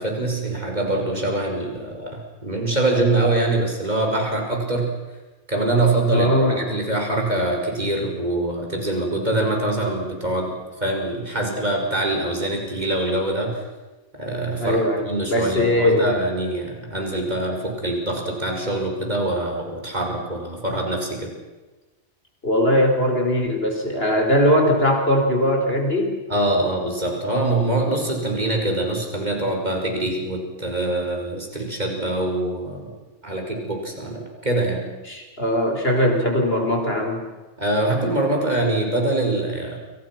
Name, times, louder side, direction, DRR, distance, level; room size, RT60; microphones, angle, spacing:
voice 1, 0.0-4.9 5.5-13.6 14.1-21.3 26.3-32.9 33.2-34.9 37.6-39.8, right 2 dB, 30° right, 2 dB, 5.8 m, -24 dB
voice 2, 6.1-6.7 14.6-16.2 22.4-26.2 35.0-37.3, left 1 dB, 45° left, 2 dB, 5.1 m, -20 dB
30.0 x 25.5 x 6.1 m, 1.2 s
omnidirectional pair, 1.5 m